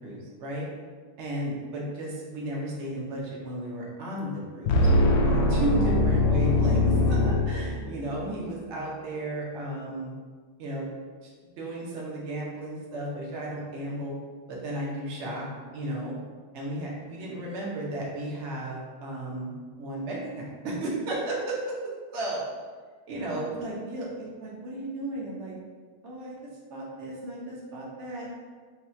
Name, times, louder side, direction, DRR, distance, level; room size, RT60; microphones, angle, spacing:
voice 1, 0.0-0.7 1.2-10.1 10.6-10.9 11.2-11.3 11.6-14.1 14.5-15.5 15.7-16.1 16.5-21.7 22.1-22.4 23.1-25.5 26.0-26.4 26.7-28.3, right 1 dB, 55° right, -4 dB, 0.8 m, -34 dB
sound 1, 4.6-8.1, left 2 dB, 85° left, 0.8 m, -22 dB
4.2 x 2.3 x 4.3 m, 1.5 s
omnidirectional pair, 2.3 m